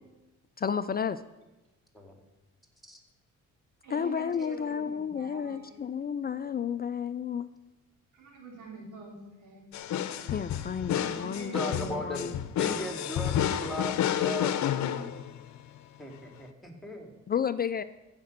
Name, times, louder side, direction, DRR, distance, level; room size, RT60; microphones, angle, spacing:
voice 1, 0.6-1.2 3.9-7.5 10.3-12.4 17.3-17.8, left 7 dB, 30° left, 12 dB, 0.4 m, -32 dB
voice 2, 3.8-5.7 8.1-9.7 10.9-12.0 12.3-12.4, right 4 dB, 85° right, 0 dB, 2.9 m, -45 dB
sound 1, 9.7-15.6, left 10 dB, 70° left, 0.7 m, -30 dB
voice 3, 11.5-14.6 16.0-17.1, equal, ahead, 3 dB, 2.3 m, -37 dB
15.0 x 5.2 x 6.6 m, 1.1 s
cardioid pair, 90°, 30 cm